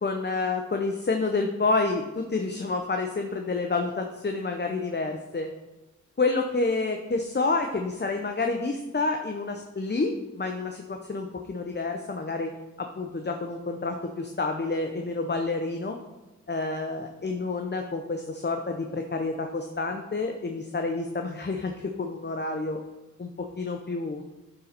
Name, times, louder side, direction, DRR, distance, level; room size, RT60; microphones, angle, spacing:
voice 1, 0.0-5.5 6.2-12.5 12.8-16.0 16.5-22.8 23.2-24.2, left 3 dB, 35° left, 4 dB, 0.7 m, -29 dB
11.5 x 4.0 x 4.3 m, 1.1 s
wide cardioid pair, 50°, 30 cm